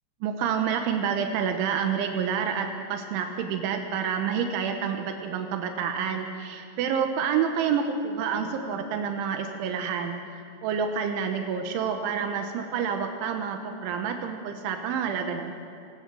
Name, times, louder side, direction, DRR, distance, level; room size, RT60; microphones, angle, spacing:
voice 1, 0.2-10.2 10.6-15.5, right 7 dB, 85° right, 5 dB, 3.5 m, -28 dB
21.5 x 20.5 x 6.1 m, 2.7 s
omnidirectional pair, 5.4 m